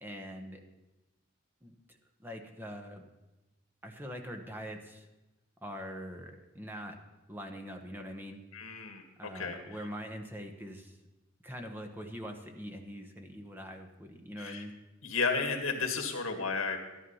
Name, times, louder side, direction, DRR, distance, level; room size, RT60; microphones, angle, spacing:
voice 1, 0.0-0.6 1.6-3.0 3.8-5.1 5.6-7.0 7.3-8.4 9.2-11.0 11.4-14.7, equal, 10° right, 4 dB, 1.1 m, -43 dB
voice 2, 8.5-9.6 14.4-14.6 15.0-16.8, left 4 dB, 90° left, 4 dB, 2.0 m, -33 dB
13.0 x 11.0 x 5.6 m, 1.0 s
head